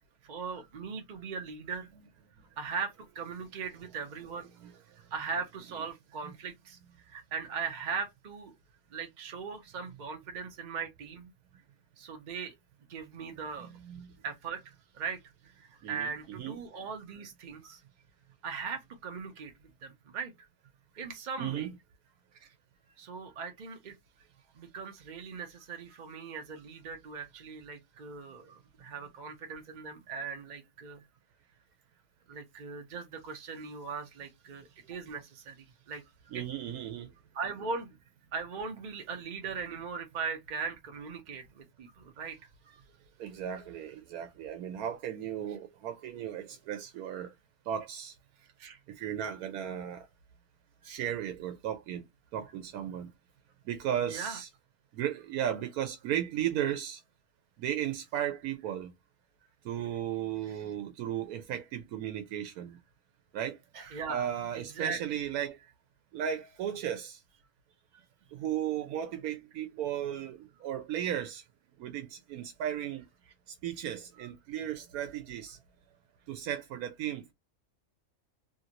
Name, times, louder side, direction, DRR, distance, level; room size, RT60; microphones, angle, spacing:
voice 1, 0.2-1.9 2.6-4.5 5.0-6.8 7.1-8.6 8.9-11.3 12.0-12.6 12.9-13.8 14.2-17.8 18.4-20.5 21.0-21.7 22.4-22.5 23.0-24.0 24.6-31.0 32.3-36.4 37.3-38.0 38.3-42.8 48.4-48.8 54.1-54.4 60.4-60.6 63.7-65.0 74.2-74.3, right 5 dB, 55° right, 0.5 m, -39 dB
voice 2, 13.6-14.1 15.8-16.5 21.4-21.7 36.3-37.1 43.2-47.3 47.7-48.1 48.9-50.1 50.8-52.0 52.3-53.1 53.7-54.5 54.9-57.0 57.6-58.9 59.6-62.8 63.3-63.6 64.1-65.7 66.1-67.2 68.3-71.4 71.8-73.0 73.5-75.6 76.3-77.3, right 10 dB, 90° right, 1.1 m, -35 dB
2.9 x 2.5 x 2.8 m
omnidirectional pair, 1.5 m